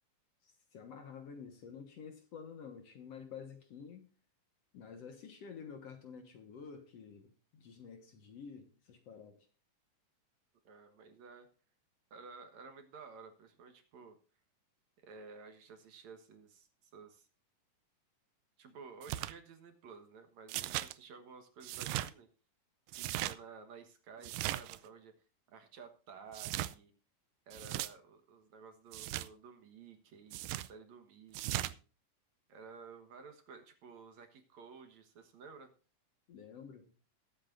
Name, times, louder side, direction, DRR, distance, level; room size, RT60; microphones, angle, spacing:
voice 1, 0.4-4.1 4.7-9.5 36.3-36.9, left 6 dB, 55° left, 2.2 m, -50 dB
voice 2, 10.7-11.5 12.1-14.2 15.0-17.3 18.6-22.3 22.9-25.1 25.5-26.9 27.5-31.7 32.5-35.7, right 5 dB, 60° right, 2.4 m, -53 dB
sound 1, 19.0-19.3 20.5-20.9 21.6-22.1 22.9-23.3 24.2-24.8 26.3-26.7 27.5-27.9 28.9-29.3 30.3-30.7 31.3-31.7, right 15 dB, 85° right, 2.3 m, -37 dB
20.5 x 8.5 x 2.6 m
omnidirectional pair, 3.9 m